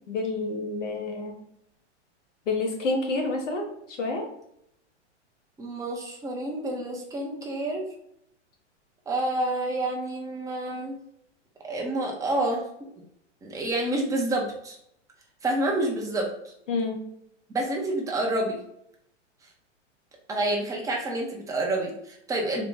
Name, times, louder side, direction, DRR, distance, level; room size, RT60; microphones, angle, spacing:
voice 1, 0.1-1.3 2.5-4.3 16.7-17.0, left 3 dB, 80° left, 2 dB, 1.2 m, -28 dB
voice 2, 5.6-7.8 9.1-11.0 11.6-12.6 13.4-14.8 15.4-16.5 17.5-18.6 20.3-22.7, right 1 dB, 10° right, -1 dB, 0.7 m, -28 dB
3.6 x 2.3 x 3.8 m, 0.73 s
hypercardioid pair, 125°, 36 cm